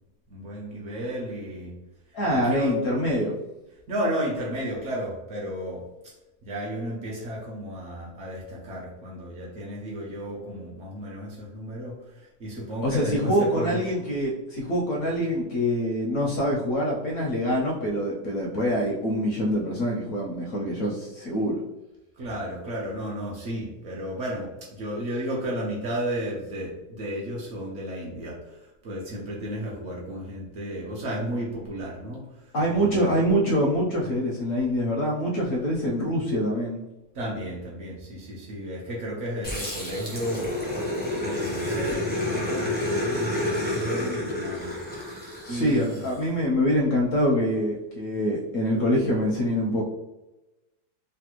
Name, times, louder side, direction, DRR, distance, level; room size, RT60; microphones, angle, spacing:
voice 1, 0.3-1.8 2.3-2.7 3.9-6.1 6.4-13.8 22.2-33.2 37.1-40.6 41.2-44.8 45.1-45.2 45.5-46.1, equal, 60° right, -4 dB, 0.9 m, -33 dB
voice 2, 2.1-3.3 12.8-21.6 32.5-36.8 45.4-49.8, equal, 70° left, -1 dB, 0.8 m, -25 dB
Growling, 39.4-46.1, left 1 dB, 10° left, 0.4 m, -29 dB
3.2 x 2.1 x 2.9 m, 0.99 s
omnidirectional pair, 1.7 m